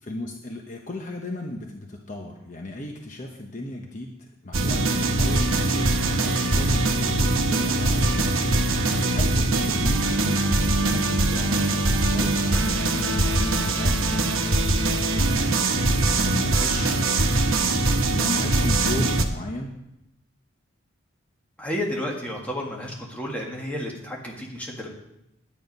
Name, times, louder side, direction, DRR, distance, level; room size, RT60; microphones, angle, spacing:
voice 1, 0.0-17.5 18.1-19.8, left 1 dB, 35° left, 2 dB, 0.9 m, -36 dB
sound 1, 4.5-19.2, right 2 dB, 75° right, 1.0 m, -22 dB
voice 2, 21.6-24.9, left 1 dB, 5° left, -2 dB, 1.7 m, -31 dB
10.5 x 9.4 x 5.3 m, 0.86 s
head